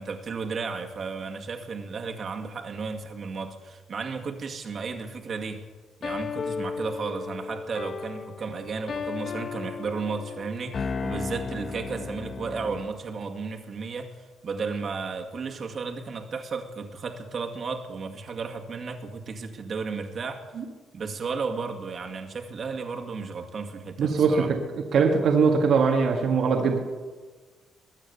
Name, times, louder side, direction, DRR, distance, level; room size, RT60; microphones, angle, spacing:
voice 1, 0.0-5.6 6.0-20.5 20.9-24.5, right 4 dB, 50° right, 3 dB, 2.2 m, -34 dB
sound 1, 6.0-13.0, left 5 dB, 50° left, 1.0 m, -34 dB
voice 2, 24.0-24.6 24.9-26.8, right 5 dB, 65° right, 1 dB, 1.8 m, -21 dB
21.5 x 9.1 x 7.0 m, 1.4 s
cardioid pair, 90°, 0 cm